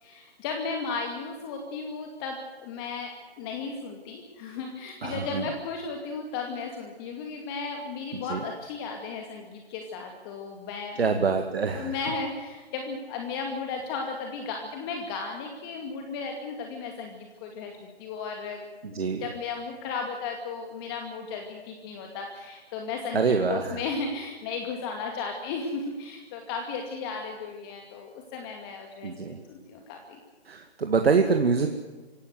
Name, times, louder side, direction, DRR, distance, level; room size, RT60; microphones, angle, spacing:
voice 1, 0.0-11.0 11.8-17.7 18.0-18.6 18.9-30.2, left 4 dB, 20° left, 3 dB, 2.3 m, -35 dB
voice 2, 5.0-5.5 8.3-8.4 11.0-11.9 18.9-19.2 23.1-23.8 29.0-29.4 30.5-31.7, right 5 dB, 70° right, 5 dB, 2.2 m, -25 dB
26.0 x 17.0 x 8.0 m, 1.3 s
figure-of-eight pair, 150°, 32 cm